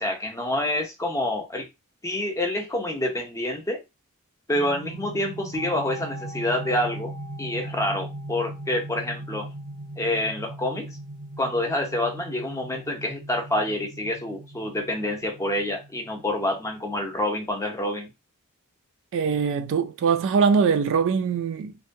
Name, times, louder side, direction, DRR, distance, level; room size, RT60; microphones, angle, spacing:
voice 1, 0.0-1.7 2.0-3.8 4.5-7.1 7.4-9.5 10.0-10.9 11.4-18.1, left 1 dB, 15° left, 0.6 m, -27 dB
sound 1, 4.5-17.2, right 1 dB, 85° right, 0.7 m, -39 dB
voice 2, 19.1-21.8, right 6 dB, 60° right, 0.3 m, -22 dB
2.6 x 2.2 x 2.6 m
head